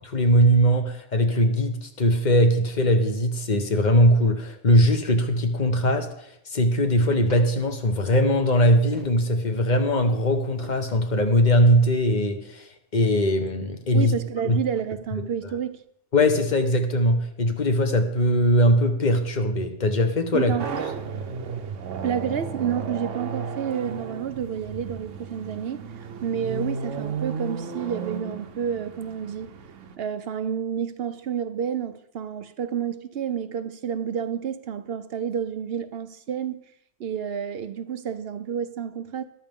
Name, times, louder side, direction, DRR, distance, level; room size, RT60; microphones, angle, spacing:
voice 1, 0.1-6.1 6.5-12.7 12.9-14.1 14.5-14.6 16.1-20.5, equal, 40° left, 1.2 m, -20 dB
sound 1, 6.6-12.0, left 1 dB, 65° left, 4.1 m, -49 dB
voice 2, 13.9-15.8 20.3-20.9 22.0-25.8 26.2-29.5 30.0-36.6 37.0-39.2, right 8 dB, 60° right, 0.8 m, -29 dB
sound 2, 20.6-29.9, right 5 dB, 80° right, 1.2 m, -34 dB
13.5 x 12.5 x 3.6 m
omnidirectional pair, 1.3 m